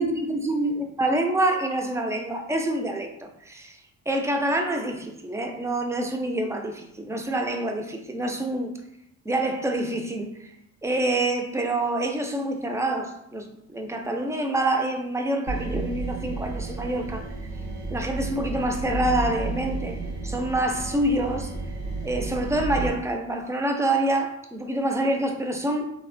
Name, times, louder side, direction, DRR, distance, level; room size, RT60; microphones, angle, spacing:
voice 1, 0.0-3.8 4.1-8.7 9.3-10.5 10.8-17.2 17.9-20.0 20.2-21.5 22.0-25.9, right 1 dB, 10° right, 3 dB, 0.3 m, -26 dB
sound 1, 15.5-22.9, right 3 dB, 75° right, 0.7 m, -32 dB
3.2 x 2.1 x 2.5 m, 0.78 s
cardioid pair, 90°, 30 cm